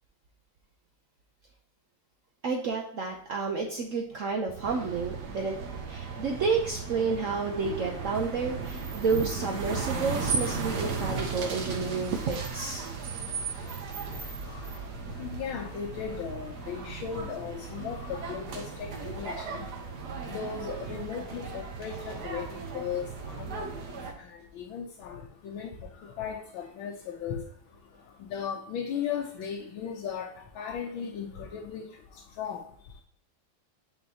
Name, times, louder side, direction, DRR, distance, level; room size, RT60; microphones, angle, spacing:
voice 1, 2.4-5.6 5.9-12.9, right 4 dB, 80° right, 1 dB, 0.7 m, -30 dB
sound 1, 4.6-24.1, right 4 dB, 55° right, 1.6 m, -36 dB
voice 2, 15.2-19.7 20.3-23.7 24.6-25.7 26.0-27.4 28.3-30.3 30.6-31.9 32.4-32.6, left 7 dB, 75° left, 0 dB, 1.5 m, -36 dB
9.5 x 3.9 x 2.8 m, 0.65 s
omnidirectional pair, 2.3 m